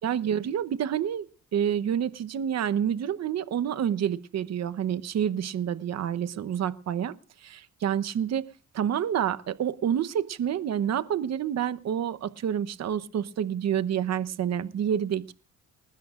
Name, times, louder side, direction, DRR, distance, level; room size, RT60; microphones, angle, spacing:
voice 1, 0.0-1.3 1.5-7.1 7.4-8.4 8.7-15.3, right 9 dB, 60° right, 13 dB, 0.9 m, -28 dB
29.0 x 12.5 x 2.5 m, 0.36 s
cardioid pair, 90°, 30 cm